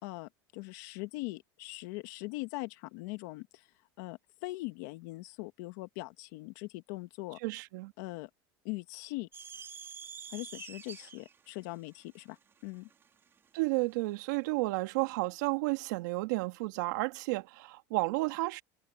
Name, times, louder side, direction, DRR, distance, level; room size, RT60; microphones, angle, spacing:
voice 1, 0.0-3.7 4.0-7.4 8.0-8.3 8.6-9.3 10.3-12.4 12.6-12.9, left 22 dB, 75° left, 1.8 m, -41 dB
voice 2, 7.4-7.9 13.5-18.6, right 23 dB, 85° right, 2.8 m, -32 dB
sound 1, 9.3-13.8, right 7 dB, 25° right, 3.6 m, -48 dB
cardioid pair, 150°, 9 cm